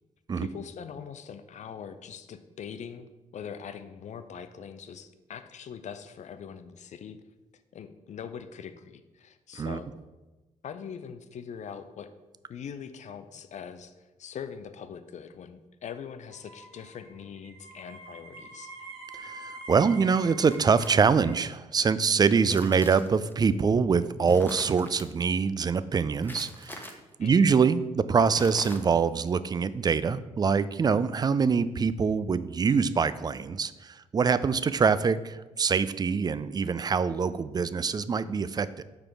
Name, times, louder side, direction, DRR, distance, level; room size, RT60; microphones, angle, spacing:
voice 1, 0.4-7.2 7.7-9.9 10.6-12.1 12.5-13.9 14.2-18.7 27.2-27.6, left 7 dB, 45° left, 10 dB, 0.5 m, -42 dB
sound 1, 16.3-21.4, right 2 dB, 70° right, 0.8 m, -45 dB
voice 2, 19.2-26.9 27.2-38.8, right 5 dB, 25° right, 15 dB, 0.4 m, -24 dB
sound 2, 20.4-21.4 22.2-23.3 24.2-25.1 26.2-26.9 28.2-29.1, left 1 dB, 10° left, 1.0 m, -43 dB
5.8 x 4.8 x 4.7 m, 1.1 s
figure-of-eight pair, 40°, 17 cm